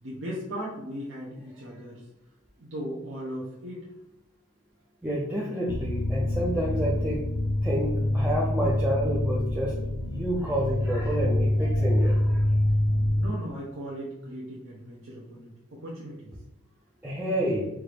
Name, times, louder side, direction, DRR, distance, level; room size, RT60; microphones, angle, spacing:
voice 1, 0.0-2.0 2.6-3.9 13.1-16.3, equal, 60° right, -4 dB, 0.7 m, -37 dB
voice 2, 5.0-7.2 7.6-9.8 10.0-12.5 17.0-17.7, equal, 10° right, -5 dB, 0.4 m, -29 dB
sound 1, 5.7-13.3, left 1 dB, 75° left, 0.4 m, -26 dB
4.5 x 2.5 x 3.3 m, 0.90 s
head